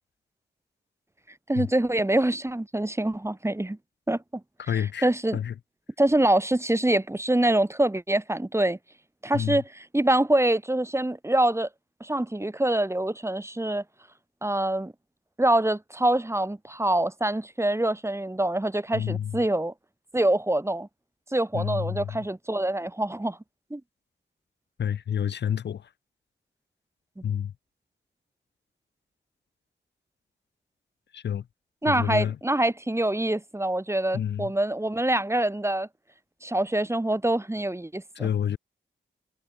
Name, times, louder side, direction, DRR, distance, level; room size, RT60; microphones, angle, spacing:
voice 1, 1.5-3.8 4.1-4.2 5.0-5.4 6.0-8.8 9.2-11.7 12.0-13.8 14.4-14.9 15.4-19.7 20.1-20.9 21.3-23.4 23.7-23.8 31.8-35.9 36.4-38.3, right 1 dB, 15° right, 1.0 m, -25 dB
voice 2, 4.7-5.5 9.3-9.6 18.9-19.4 21.5-22.2 24.8-25.9 27.2-27.5 31.1-31.4 31.9-32.4 34.1-34.5 38.2-38.6, left 9 dB, 60° left, 0.4 m, -29 dB
cardioid pair, 45°, 20 cm